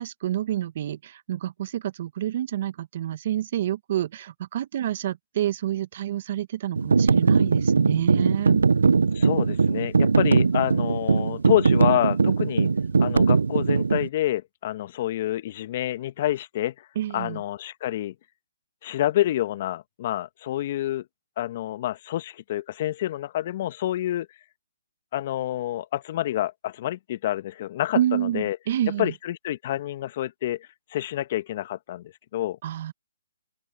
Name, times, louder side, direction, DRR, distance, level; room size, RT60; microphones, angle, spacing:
voice 1, 0.0-8.6 16.9-17.4 27.9-29.1 32.6-32.9, right 12 dB, 45° right, 1.2 m, -28 dB
sound 1, 6.8-14.1, right 4 dB, 80° right, 0.4 m, -20 dB
voice 2, 9.1-12.7 13.0-16.9 17.1-18.1 18.8-21.0 21.4-24.3 25.1-28.6 29.0-32.6, left 13 dB, 40° left, 1.3 m, -28 dB
open air
hypercardioid pair, 145°, 0 cm